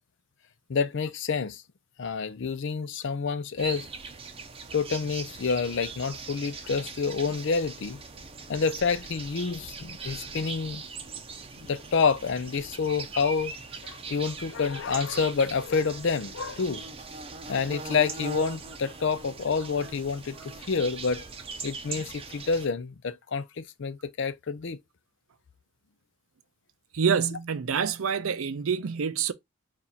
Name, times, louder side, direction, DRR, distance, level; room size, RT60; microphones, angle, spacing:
voice 1, 0.7-1.6 2.0-3.9 4.7-8.0 8.5-10.8 11.6-13.5 13.8-16.8 17.5-20.4 20.7-21.2 21.6-24.8, left 5 dB, 60° left, 0.5 m, -28 dB
sound 1, 3.6-22.7, right 4 dB, 25° right, 0.7 m, -41 dB
voice 2, 26.9-29.3, right 6 dB, 75° right, 0.5 m, -27 dB
4.2 x 2.5 x 4.0 m
head